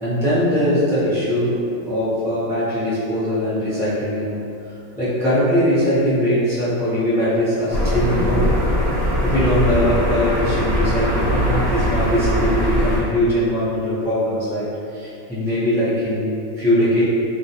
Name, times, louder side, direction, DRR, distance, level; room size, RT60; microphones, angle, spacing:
voice 1, 0.0-4.4 5.0-8.5 9.2-14.7 14.9-17.0, equal, 5° right, -12 dB, 0.4 m, -21 dB
sound 1, 7.7-13.0, equal, 40° left, 0.9 m, -20 dB
2.4 x 2.2 x 2.7 m, 2.6 s
omnidirectional pair, 1.5 m